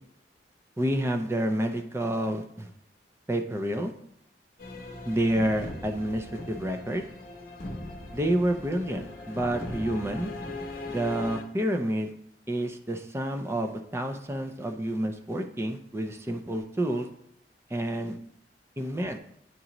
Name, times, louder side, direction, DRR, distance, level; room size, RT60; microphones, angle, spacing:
voice 1, 0.8-2.7 3.3-3.9 5.1-7.1 8.1-10.3 10.9-12.1 12.5-17.1 17.7-18.2 18.8-19.2, right 1 dB, 15° right, 5 dB, 0.5 m, -29 dB
sound 1, 4.6-11.4, left 2 dB, 55° left, 0.8 m, -39 dB
9.3 x 3.8 x 3.0 m, 0.73 s
head